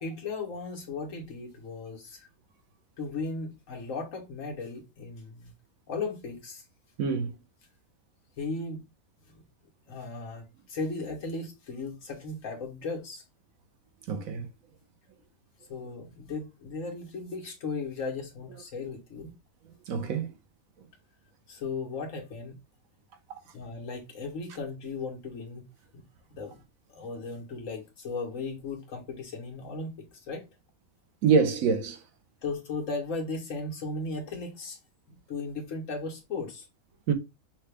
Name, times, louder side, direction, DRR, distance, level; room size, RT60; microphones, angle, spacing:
voice 1, 0.0-2.3 3.0-5.5 5.9-6.6 8.4-8.8 9.3-9.4 9.9-13.2 15.7-19.4 21.5-22.5 23.5-25.6 25.9-26.0 26.3-26.6 26.9-30.5 32.4-34.8 35.1-36.7, left 3 dB, 60° left, 1.4 m, -36 dB
voice 2, 7.0-7.3 14.1-14.5 19.9-20.3 31.2-32.0 37.1-37.2, right 5 dB, 70° right, 1.1 m, -25 dB
5.6 x 2.3 x 3.3 m
omnidirectional pair, 1.6 m